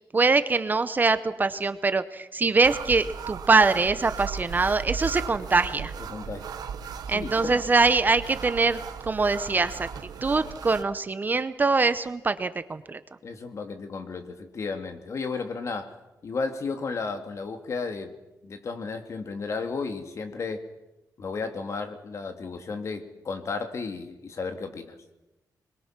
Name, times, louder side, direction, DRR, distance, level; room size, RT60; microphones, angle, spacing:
voice 1, 0.1-5.9 7.1-8.8 9.1-9.9 10.2-13.0, right 4 dB, 30° right, 12 dB, 0.8 m, -23 dB
sound 1, 2.6-10.8, right 7 dB, 90° right, 1.2 m, -36 dB
voice 2, 6.1-6.5 7.1-7.6 13.2-16.0 16.2-18.1 18.4-20.7 21.2-25.0, left 4 dB, 50° left, 6 dB, 2.3 m, -33 dB
26.0 x 22.0 x 6.0 m, 0.99 s
wide cardioid pair, 155°, 7 cm